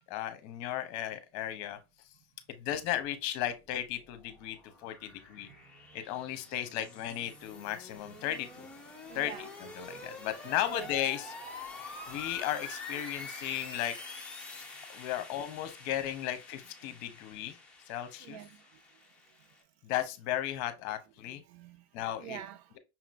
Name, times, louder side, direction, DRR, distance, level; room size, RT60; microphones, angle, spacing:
voice 1, 0.1-1.8 2.6-5.5 5.9-8.7 9.1-11.3 12.1-13.9 14.9-17.6 17.9-18.4 19.8-21.4 21.9-22.4, left 12 dB, 50° left, 0.9 m, -35 dB
sound 1, 3.6-19.6, left 3 dB, 5° left, 0.8 m, -47 dB
voice 2, 9.1-9.5 10.7-10.9 16.8-17.0 18.2-18.8 21.2-21.9 22.2-22.8, right 11 dB, 65° right, 0.6 m, -47 dB
5.8 x 2.9 x 2.5 m
supercardioid pair, 140°, 35 cm